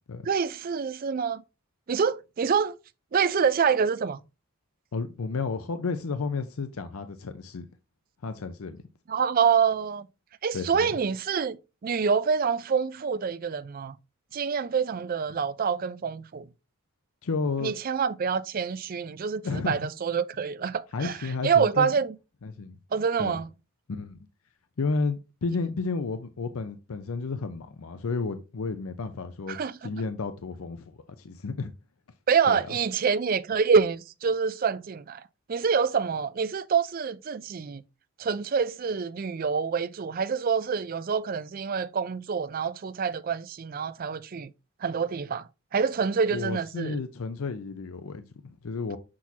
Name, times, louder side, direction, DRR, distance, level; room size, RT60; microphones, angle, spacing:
voice 1, 0.2-1.4 1.9-2.8 3.1-4.2 9.1-10.1 10.4-13.9 14.3-16.5 17.6-21.2 21.4-22.2 22.9-23.5 29.5-29.9 32.3-35.2 35.5-37.8 38.2-44.5 44.8-45.5 45.7-47.0, right 6 dB, 40° right, 0.4 m, -26 dB
voice 2, 4.9-7.7 8.2-8.8 10.5-10.9 17.2-17.7 19.4-19.8 20.9-21.9 22.4-22.8 23.2-23.4 23.9-24.2 24.8-29.6 29.8-31.7 32.5-32.7 46.3-49.0, left 4 dB, 80° left, 0.6 m, -32 dB
6.1 x 6.0 x 2.7 m
head